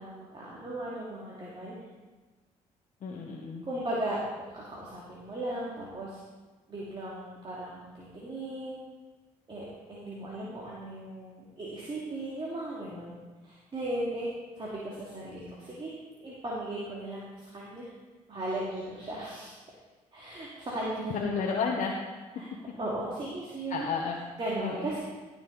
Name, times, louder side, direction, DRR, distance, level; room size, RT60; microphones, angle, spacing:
voice 1, 0.0-1.8 3.6-6.2 6.7-8.8 9.5-13.1 13.4-14.3 14.6-17.9 18.3-19.6 20.1-21.2 22.4-22.5 22.8-23.9 24.4-25.0, right 1 dB, 35° right, -6 dB, 2.6 m, -36 dB
voice 2, 3.0-3.6 21.1-21.9 23.7-24.2 24.6-24.9, left 5 dB, 65° left, -1 dB, 1.2 m, -31 dB
14.5 x 6.5 x 4.1 m, 1.3 s
supercardioid pair, 75°, 14 cm